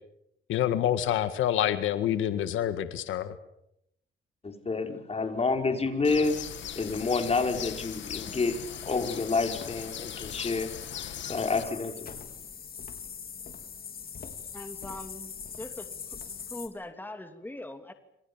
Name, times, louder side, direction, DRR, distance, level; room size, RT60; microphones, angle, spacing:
voice 1, 0.5-3.3, left 11 dB, 85° left, 11 dB, 1.7 m, -27 dB
voice 2, 4.4-6.4 6.8-12.1, left 4 dB, 30° left, 5 dB, 5.4 m, -29 dB
Bird, 6.0-11.6, left 10 dB, 65° left, 1.7 m, -40 dB
sound 1, 6.2-16.7, left 7 dB, 50° left, 4.2 m, -43 dB
voice 3, 14.5-15.3 15.6-15.9 16.5-17.9, left 1 dB, 10° left, 7 dB, 2.7 m, -41 dB
28.0 x 27.0 x 7.2 m, 0.79 s
cardioid pair, 90°, 20 cm